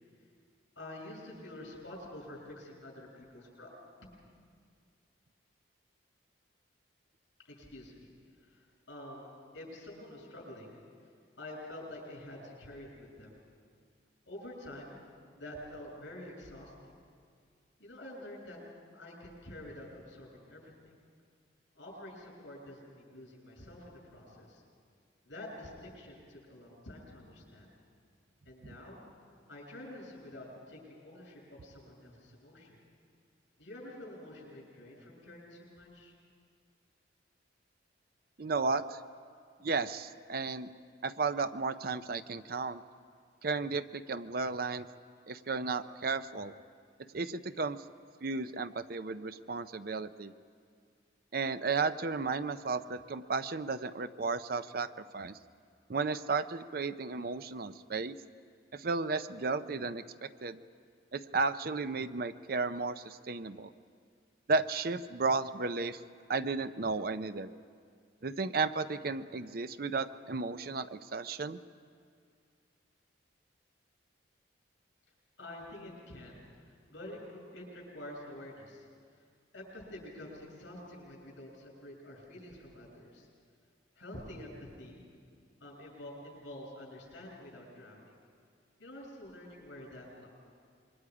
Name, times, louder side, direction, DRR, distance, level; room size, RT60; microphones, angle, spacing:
voice 1, 0.8-3.7 7.5-8.1 8.4-10.8 11.4-13.4 14.3-15.0 15.4-16.9 17.8-18.6 18.9-20.9 21.7-24.6 25.2-27.7 28.4-29.0 29.5-32.7 33.6-36.1 75.4-78.8 79.5-83.3 83.9-85.1 85.6-88.1 88.8-90.3, left 1 dB, 75° left, -2 dB, 7.9 m, -48 dB
voice 2, 38.4-39.0 39.6-40.7 41.0-42.8 43.4-44.9 45.3-46.5 47.1-47.8 48.2-50.3 51.3-55.4 55.9-58.1 58.7-60.6 61.1-63.7 64.5-66.0 66.3-67.5 68.2-71.6, right 4 dB, 50° right, 12 dB, 0.6 m, -34 dB
26.5 x 23.5 x 5.0 m, 2.2 s
head